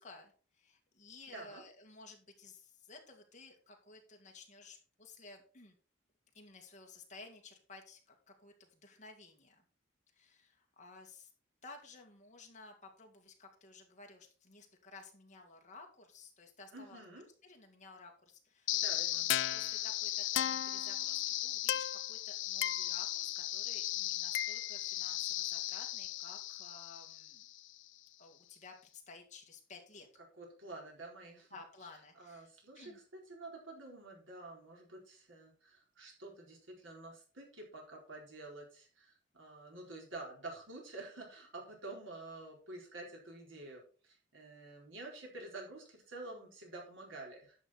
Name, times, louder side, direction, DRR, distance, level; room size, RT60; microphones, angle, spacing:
voice 1, 0.0-5.8 6.3-9.6 10.1-11.3 11.6-17.0 17.4-18.8 19.1-27.5 28.2-30.1 31.5-32.5 32.8-33.0, left 3 dB, 35° left, 2 dB, 2.2 m, -55 dB
voice 2, 1.3-1.6 16.7-17.3 18.7-19.3 30.4-31.5 32.2-47.6, right 2 dB, 85° right, -1 dB, 4.3 m, -49 dB
sound 1, 18.7-27.7, left 14 dB, 70° left, 0.4 m, -36 dB
11.0 x 6.6 x 4.2 m, 0.39 s
head